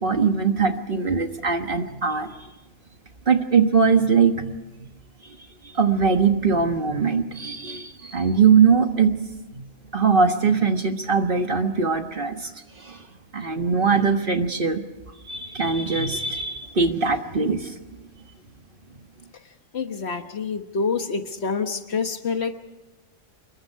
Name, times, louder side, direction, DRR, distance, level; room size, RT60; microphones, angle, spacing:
voice 1, 0.0-2.4 3.3-4.5 5.2-5.3 5.7-9.2 9.5-9.7 9.9-12.5 12.8-13.0 13.3-14.8 15.2-17.7, right 5 dB, 45° right, 6 dB, 1.5 m, -21 dB
voice 2, 19.7-22.6, left 5 dB, 55° left, 7 dB, 1.5 m, -27 dB
26.5 x 21.5 x 4.7 m, 1.1 s
omnidirectional pair, 1.3 m